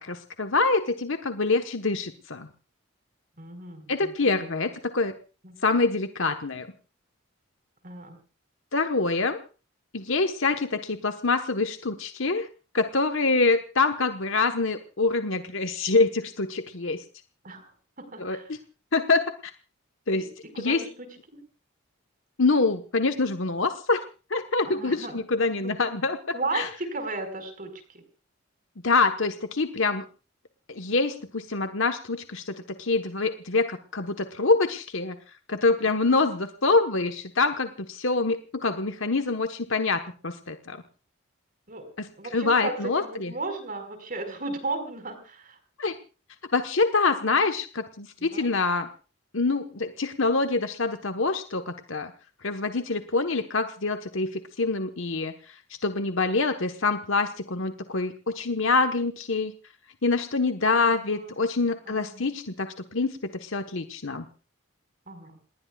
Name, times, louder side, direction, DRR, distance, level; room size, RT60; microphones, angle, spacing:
voice 1, 0.0-2.5 3.9-5.1 5.6-6.7 8.7-9.4 9.9-12.5 12.7-17.0 18.2-18.6 18.9-19.2 20.1-20.3 20.6-20.8 22.4-24.0 24.3-26.7 28.8-30.0 30.7-35.2 35.5-40.8 42.3-43.3 45.8-46.0 46.5-48.9 49.3-52.1 52.4-55.3 55.8-59.5 60.0-64.2, left 3 dB, 65° left, 6 dB, 1.3 m, -25 dB
voice 2, 3.4-4.5 5.4-5.5 7.8-8.2 17.4-17.7 18.0-18.5 20.1-20.2 20.5-21.4 24.6-25.2 25.6-25.7 26.3-27.7 35.9-36.2 41.7-41.9 42.2-45.6 48.2-48.5 60.8-61.3 61.9-62.3 65.1-65.4, right 2 dB, 40° right, 7 dB, 5.1 m, -35 dB
28.5 x 19.5 x 2.4 m, 0.35 s
head